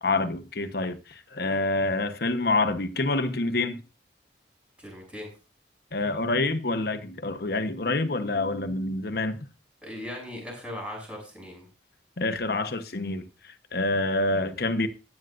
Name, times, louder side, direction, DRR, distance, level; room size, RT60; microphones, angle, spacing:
voice 1, 0.0-3.8 5.9-9.4 12.2-13.3 13.7-14.9, left 2 dB, 55° left, 1.1 m, -27 dB
voice 2, 4.8-5.3 9.8-11.7, left 1 dB, 5° right, 6.3 m, -38 dB
15.5 x 11.0 x 2.6 m
head